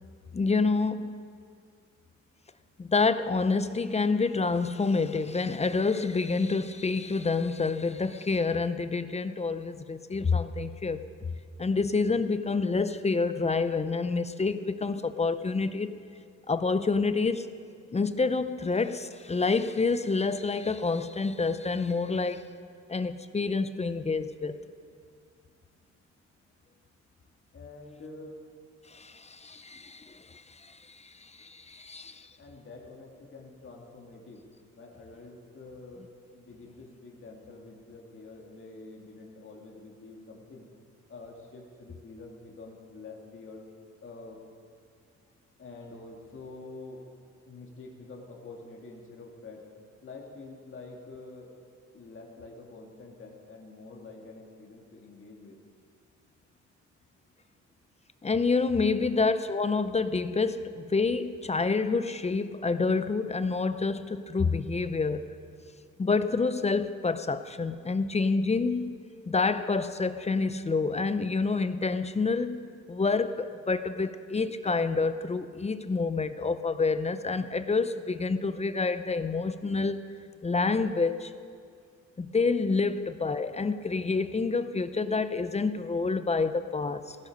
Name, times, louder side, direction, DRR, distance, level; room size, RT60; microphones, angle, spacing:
voice 1, 0.3-1.1 2.8-11.0 11.6-15.9 16.5-17.5 17.9-22.5 22.9-24.6 28.9-32.3 58.2-65.2 66.0-69.0 69.3-80.0 80.4-81.3 82.2-87.2, left 4 dB, 20° left, 12 dB, 0.6 m, -28 dB
voice 2, 27.5-28.3 32.4-34.4 34.7-36.0 36.3-40.7 41.1-43.6 44.0-44.4 45.6-47.0 47.5-49.7 50.0-51.5 51.9-55.6 82.8-83.0, left 3 dB, 40° left, -1 dB, 2.3 m, -47 dB
16.5 x 13.5 x 5.3 m, 2.2 s
cardioid pair, 90°, 30 cm